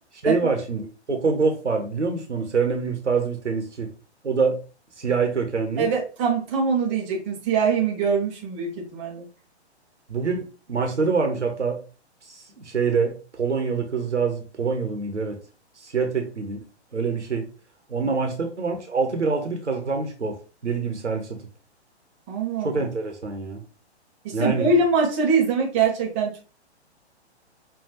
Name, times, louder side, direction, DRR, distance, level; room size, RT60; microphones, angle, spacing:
voice 1, 0.2-3.9 4.2-4.6 5.0-5.9 10.1-11.8 12.3-15.4 15.8-16.6 16.9-17.5 17.9-20.4 20.6-21.4 22.6-23.6 24.3-24.7, right 4 dB, 90° right, 4 dB, 0.9 m, -25 dB
voice 2, 5.8-9.3 22.3-22.8 24.2-26.4, right 4 dB, 10° right, -2 dB, 0.4 m, -23 dB
5.6 x 2.3 x 2.9 m, 0.35 s
figure-of-eight pair, 120°, 34 cm